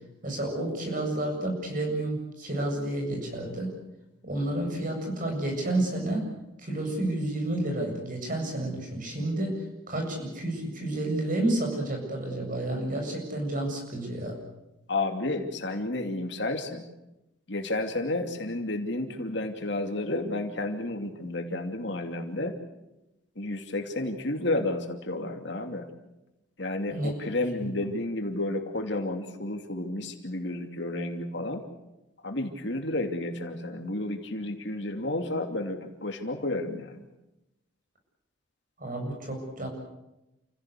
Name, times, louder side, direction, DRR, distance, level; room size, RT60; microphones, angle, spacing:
voice 1, 0.2-3.7 4.2-6.3 6.6-14.4 26.9-27.1 27.6-27.7 38.8-39.7, right 1 dB, 40° right, 2 dB, 7.8 m, -30 dB
voice 2, 14.9-16.8 17.5-22.5 23.4-25.9 26.6-31.6 32.2-37.1, left 2 dB, 60° left, 5 dB, 2.7 m, -31 dB
29.5 x 16.5 x 8.4 m, 0.94 s
head